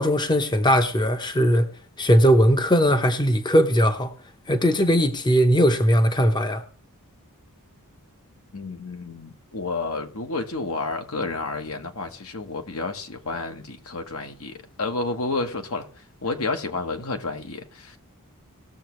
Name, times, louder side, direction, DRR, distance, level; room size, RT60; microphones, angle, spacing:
voice 1, 0.0-1.7 2.0-4.1 4.5-6.6, equal, 20° left, 0.9 m, -19 dB
voice 2, 8.5-18.0, left 3 dB, 65° left, 1.3 m, -30 dB
18.5 x 7.0 x 3.1 m
head